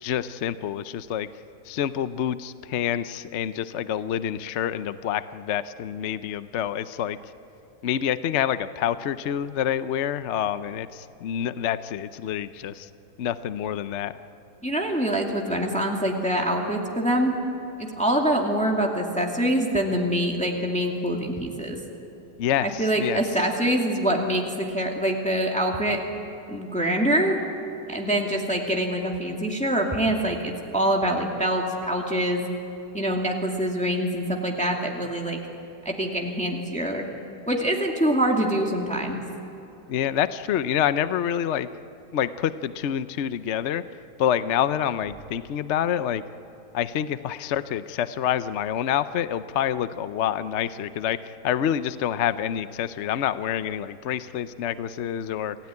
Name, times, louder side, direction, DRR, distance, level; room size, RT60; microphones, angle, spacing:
voice 1, 0.0-1.3 1.7-7.2 7.8-12.9 13.2-14.1 22.4-23.2 39.9-41.7 42.1-43.8 44.2-46.2 46.7-51.2 51.4-55.6, left 10 dB, 60° left, 13 dB, 0.8 m, -27 dB
voice 2, 14.6-17.4 17.8-21.8 22.6-26.0 26.5-27.4 27.9-32.4 32.9-35.4 35.8-37.1 37.5-39.2, right 1 dB, 5° left, 0 dB, 2.3 m, -25 dB
27.5 x 16.5 x 9.7 m, 2.9 s
omnidirectional pair, 1.7 m